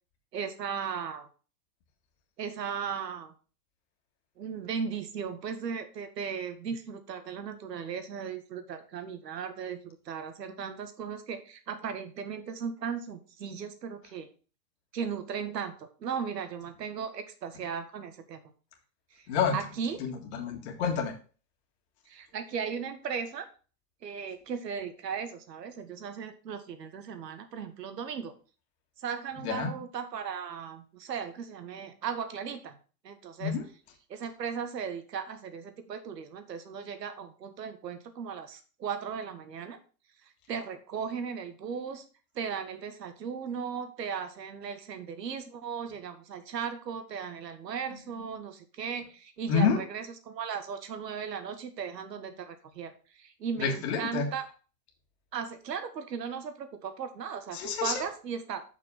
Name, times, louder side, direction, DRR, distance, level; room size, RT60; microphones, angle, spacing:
voice 1, 0.3-1.3 2.4-3.3 4.4-14.3 14.9-18.4 19.1-19.2 19.5-20.0 22.1-23.5 24.0-28.3 29.0-32.8 33.0-33.5 34.1-39.8 40.5-42.1 42.4-54.5 55.3-58.6, right 6 dB, 80° right, 9 dB, 1.7 m, -37 dB
voice 2, 19.3-19.6 20.0-21.1 29.4-29.7 33.4-33.6 49.5-49.8 53.6-54.3 57.5-58.0, left 6 dB, 40° left, 3 dB, 1.8 m, -28 dB
6.5 x 5.1 x 5.6 m, 0.37 s
hypercardioid pair, 155°, 49 cm